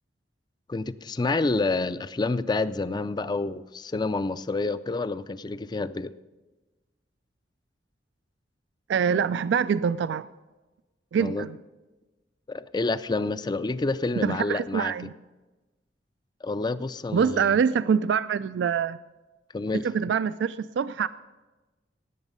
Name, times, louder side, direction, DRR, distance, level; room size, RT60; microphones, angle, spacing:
voice 1, 0.7-6.1 11.2-11.5 12.5-15.1 16.4-17.5 19.5-19.8, left 3 dB, 25° left, 15 dB, 0.4 m, -28 dB
voice 2, 8.9-10.3 11.1-11.6 14.2-15.1 17.1-19.0 19.8-21.1, right 7 dB, 75° right, 15 dB, 0.3 m, -25 dB
18.0 x 8.0 x 5.3 m, 1.2 s
head